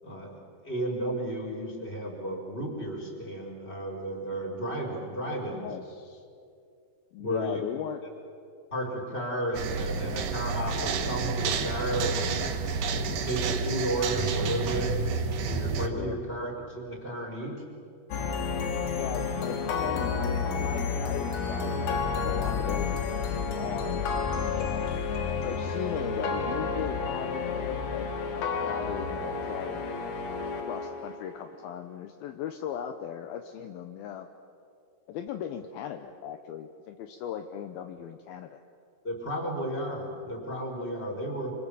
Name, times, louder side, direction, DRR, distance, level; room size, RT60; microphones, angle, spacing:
voice 1, 0.0-5.7 7.2-7.6 8.7-12.4 12.9-17.6 39.0-41.5, right 1 dB, 15° left, 0 dB, 4.1 m, -33 dB
voice 2, 5.5-6.2 7.1-8.0 15.9-16.2 19.0-23.1 23.5-25.0 25.4-29.9 30.7-34.3 35.1-38.6, left 9 dB, 80° left, 7 dB, 2.2 m, -38 dB
sound 1, 9.5-15.9, right 4 dB, 65° right, 2.2 m, -30 dB
sound 2, 18.1-31.4, left 5 dB, 60° left, 3.4 m, -30 dB
26.0 x 26.0 x 7.0 m, 2.5 s
omnidirectional pair, 5.4 m